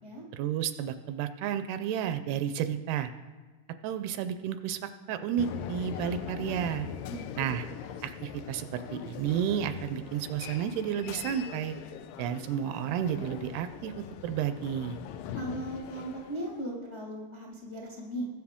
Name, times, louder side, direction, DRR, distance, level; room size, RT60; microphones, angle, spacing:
voice 1, 0.3-3.1 3.8-6.9 7.4-7.7 8.0-11.8 12.2-15.0, right 9 dB, 80° right, 10 dB, 2.4 m, -32 dB
sound 1, 5.4-16.6, left 9 dB, 85° left, 2.0 m, -42 dB
voice 2, 7.1-7.5 15.3-18.3, right 1 dB, 50° left, -4 dB, 0.7 m, -38 dB
20.5 x 8.0 x 3.6 m, 1.3 s
omnidirectional pair, 4.7 m